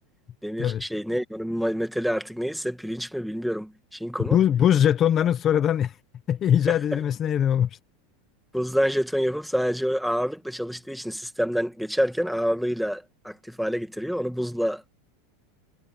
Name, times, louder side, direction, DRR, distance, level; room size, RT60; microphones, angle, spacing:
voice 1, 0.4-4.4 8.5-14.9, equal, ahead, 1.9 m, -27 dB
voice 2, 4.3-6.0 6.3-7.8, left 10 dB, 30° left, 1.1 m, -21 dB
supercardioid pair, 140°, 0 cm